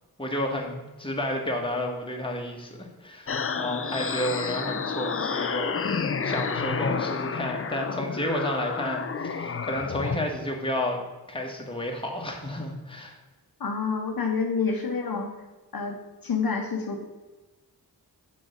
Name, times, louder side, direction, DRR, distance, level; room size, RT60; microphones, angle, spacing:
voice 1, 0.2-5.8 6.2-11.0 11.3-13.2, left 1 dB, 15° left, 0 dB, 1.3 m, -31 dB
sound 1, 3.3-10.2, left 5 dB, 35° left, 0.5 m, -30 dB
voice 2, 13.6-15.3 15.7-16.0 16.2-17.0, left 5 dB, 65° left, 3 dB, 0.9 m, -28 dB
6.4 x 4.2 x 6.5 m, 1.2 s
wide cardioid pair, 90°, 39 cm